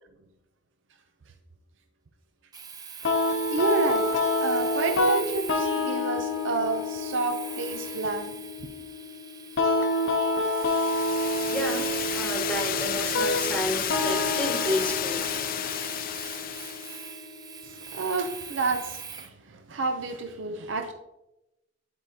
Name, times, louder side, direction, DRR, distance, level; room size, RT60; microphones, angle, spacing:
Domestic sounds home sounds, 2.5-19.3, right 6 dB, 20° right, 0.4 m, -41 dB
sound 1, 3.0-18.0, left 2 dB, 90° left, 0.7 m, -29 dB
voice 1, 3.5-8.3 17.6-20.9, right 3 dB, 85° right, 0.6 m, -30 dB
sound 2, 10.5-17.0, left 10 dB, 50° left, 0.3 m, -32 dB
voice 2, 11.5-15.2, left 1 dB, 5° left, 1.2 m, -31 dB
9.7 x 4.7 x 2.8 m
head